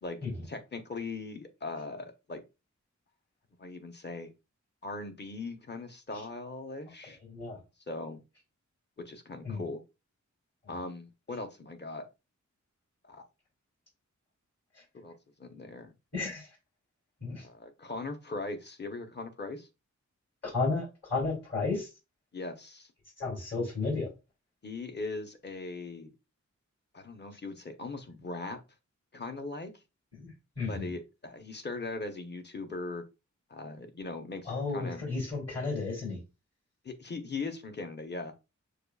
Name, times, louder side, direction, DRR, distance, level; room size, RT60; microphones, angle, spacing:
voice 1, 0.4-2.4 3.6-4.3 4.8-7.2 7.9-8.2 9.0-9.8 10.7-12.1 13.0-13.2 14.9-15.9 17.4-19.7 22.3-22.9 24.6-26.1 26.9-28.6 29.1-29.7 30.7-33.0 33.5-35.0 36.8-38.3, left 3 dB, 35° left, 6 dB, 0.8 m, -39 dB
voice 2, 7.2-7.6 9.4-9.6 16.1-16.5 17.2-17.4 20.5-21.9 23.2-24.1 30.1-30.3 30.6-30.9 34.5-36.2, left 3 dB, 55° left, -3 dB, 2.5 m, -33 dB
6.5 x 2.3 x 2.3 m, 0.27 s
wide cardioid pair, 75°, 30 cm